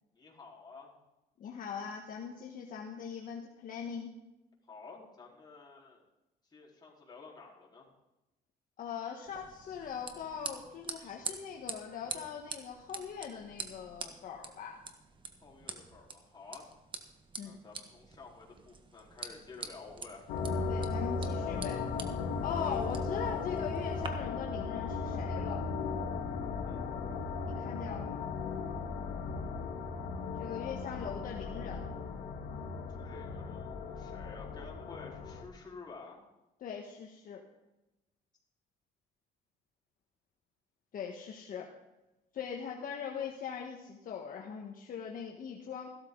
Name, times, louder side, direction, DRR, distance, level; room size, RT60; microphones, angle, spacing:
voice 1, 0.1-0.9 4.7-6.0 6.5-7.9 11.0-11.1 15.4-16.7 17.4-20.2 26.5-26.8 33.0-36.2, left 4 dB, 25° left, -4 dB, 4.4 m, -51 dB
voice 2, 1.4-4.1 8.8-14.8 17.4-17.6 20.7-21.8 22.4-25.6 27.4-28.3 30.4-31.9 36.6-37.4 40.9-41.7 42.3-45.9, left 7 dB, 55° left, 0 dB, 1.5 m, -41 dB
sound 1, 9.3-24.1, right 4 dB, 30° right, 1.5 m, -46 dB
sound 2, 20.3-35.4, left 4 dB, 75° left, 2.0 m, -36 dB
15.5 x 12.5 x 4.0 m, 0.97 s
cardioid pair, 110°, 17 cm